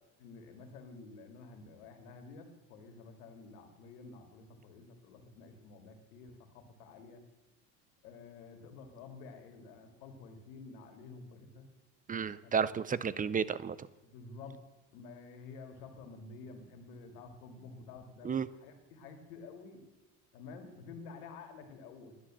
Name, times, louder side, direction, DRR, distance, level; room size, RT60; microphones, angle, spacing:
voice 1, 0.2-7.2 8.0-11.7 12.4-12.7 14.0-14.6 14.9-19.8 20.3-22.2, left 4 dB, 85° left, 6 dB, 2.5 m, -50 dB
voice 2, 12.1-13.9 18.2-18.5, right 6 dB, 20° right, 18 dB, 0.6 m, -32 dB
11.0 x 10.0 x 7.6 m, 1.1 s
supercardioid pair, 95°, 44 cm